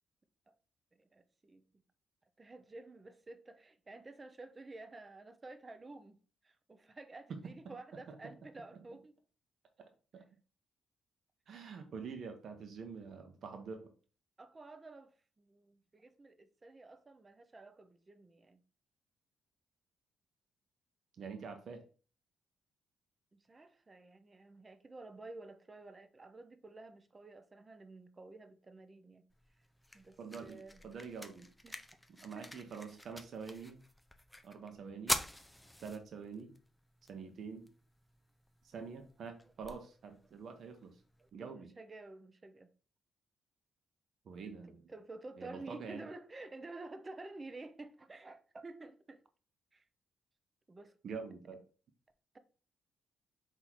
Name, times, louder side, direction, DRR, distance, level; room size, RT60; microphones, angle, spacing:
voice 1, 0.9-1.8 2.4-6.2 6.4-9.1 14.4-15.1 15.4-18.6 23.3-29.2 29.9-30.8 31.6-32.0 32.3-32.5 41.2-41.3 41.5-42.7 44.6-49.2 49.7-49.8 50.7-50.9, right 2 dB, 30° right, 0.6 m, -51 dB
voice 2, 7.3-8.3 10.1-10.2 11.5-13.9 21.1-21.8 30.2-31.5 32.2-33.8 34.4-35.2 35.8-36.5 37.1-37.7 38.6-41.0 41.3-41.7 44.2-44.9 45.4-46.1 51.0-51.6, right 5 dB, 65° right, 0.8 m, -46 dB
sound 1, 29.3-41.3, left 1 dB, 5° left, 0.5 m, -46 dB
4.0 x 2.7 x 4.5 m
cardioid pair, 70°, 0 cm